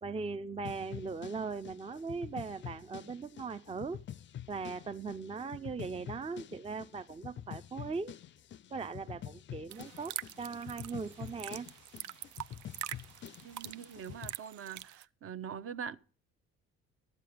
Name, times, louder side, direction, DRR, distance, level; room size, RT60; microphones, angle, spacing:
voice 1, 0.0-4.0 4.5-8.2 8.7-11.7, right 4 dB, 20° right, 0.5 m, -39 dB
sound 1, 0.6-14.4, left 10 dB, 35° left, 0.4 m, -47 dB
sound 2, 9.7-15.1, right 13 dB, 65° right, 0.6 m, -45 dB
voice 2, 13.4-16.0, right 7 dB, 45° right, 0.9 m, -43 dB
12.5 x 7.6 x 5.0 m
supercardioid pair, 65°, 32 cm